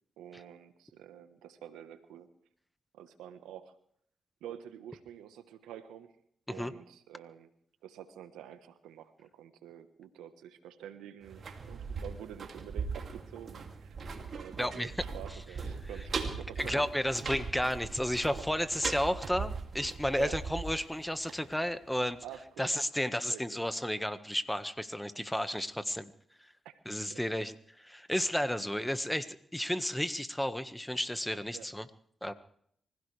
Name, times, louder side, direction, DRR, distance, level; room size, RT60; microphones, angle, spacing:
voice 1, 0.2-2.3 2.9-3.7 4.4-6.1 6.5-7.5 7.8-13.9 14.3-16.8 20.2-20.4 22.2-22.7 23.3-23.6 26.6-26.8 27.1-27.5 31.5-31.7, right 10 dB, 90° right, 10 dB, 1.2 m, -48 dB
sound 1, 11.2-22.0 22.3-22.4, right 5 dB, 65° right, 2.6 m, -40 dB
voice 2, 14.6-14.9 16.6-22.2 22.6-26.1 26.4-26.5 26.8-27.5 27.9-31.9 32.2-32.3, equal, 5° left, 11 dB, 1.5 m, -32 dB
25.0 x 16.5 x 3.4 m, 0.66 s
supercardioid pair, 40°, 0 cm